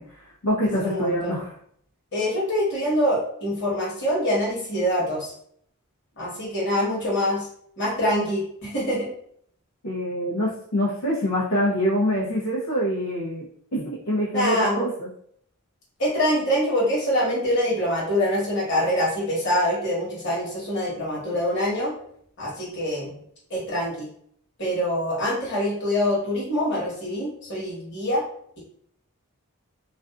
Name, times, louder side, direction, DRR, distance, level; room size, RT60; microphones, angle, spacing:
voice 1, 0.0-1.5 9.8-13.5 13.7-15.1, equal, 85° left, -7 dB, 0.7 m, -25 dB
voice 2, 0.8-1.3 2.1-5.3 6.2-7.5 7.8-9.1 14.3-14.8 16.0-21.9 22.4-23.2 23.5-24.1 24.6-28.2, equal, 55° left, -7 dB, 1.2 m, -25 dB
2.5 x 2.4 x 2.4 m, 0.67 s
head